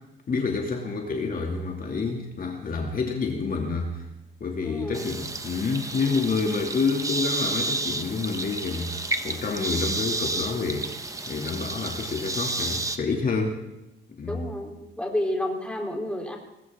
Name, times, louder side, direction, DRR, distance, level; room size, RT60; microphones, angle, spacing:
voice 1, 0.3-4.1 4.4-13.6 14.2-14.5, left 4 dB, 45° left, 1 dB, 2.6 m, -28 dB
voice 2, 4.6-5.1 14.3-16.4, left 1 dB, 5° left, 1 dB, 3.7 m, -30 dB
sound 1, 4.9-13.0, right 2 dB, 15° right, 1.3 m, -31 dB
20.0 x 16.5 x 3.7 m, 0.95 s
cardioid pair, 90°, 20 cm